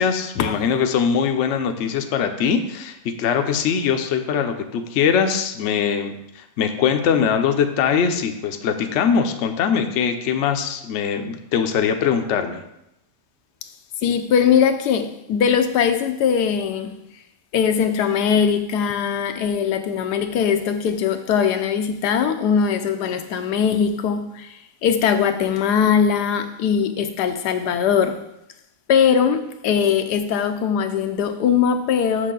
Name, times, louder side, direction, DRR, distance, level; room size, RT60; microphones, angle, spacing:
voice 1, 0.0-12.6, left 7 dB, 60° left, 6 dB, 0.8 m, -22 dB
voice 2, 14.0-16.9 17.5-28.2 28.9-32.3, left 7 dB, 80° left, 8 dB, 1.2 m, -20 dB
6.5 x 6.4 x 3.8 m, 0.84 s
omnidirectional pair, 1.7 m